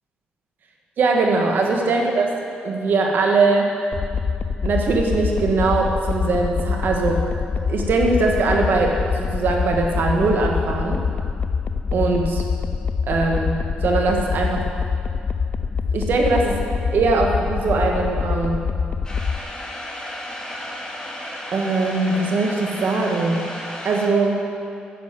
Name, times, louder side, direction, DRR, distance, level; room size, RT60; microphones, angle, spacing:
voice 1, 1.0-2.3 2.6-3.7 4.6-7.2 7.7-11.0 11.9-12.4 13.1-13.6 13.8-14.7 15.9-16.6 16.9-18.6 21.5-23.4 23.8-24.4, right 3 dB, 65° right, 1 dB, 1.9 m, -21 dB
sound 1, 3.9-19.4, left 5 dB, 50° left, 0.5 m, -25 dB
sound 2, 19.0-24.1, left 1 dB, 20° left, 3.3 m, -33 dB
9.9 x 7.7 x 8.0 m, 2.4 s
supercardioid pair, 60°, 4 cm